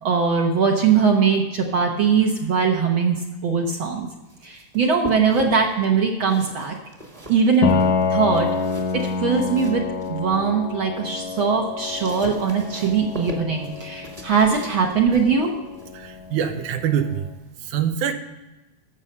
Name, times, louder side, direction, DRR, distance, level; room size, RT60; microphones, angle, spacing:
voice 1, 0.0-4.1 4.4-6.8 7.3-7.8 8.1-8.5 8.9-9.8 10.1-15.5, right 5 dB, 60° right, 2 dB, 1.4 m, -21 dB
sound 1, 4.0-5.8 6.2-10.5 10.9-17.5, right 1 dB, 20° right, 1.1 m, -41 dB
Piano, 7.6-17.2, left 5 dB, 75° left, 2.2 m, -28 dB
voice 2, 15.9-17.3 17.6-18.1, right 9 dB, 85° right, 7 dB, 2.4 m, -24 dB
13.0 x 7.2 x 5.5 m, 1.1 s
omnidirectional pair, 3.5 m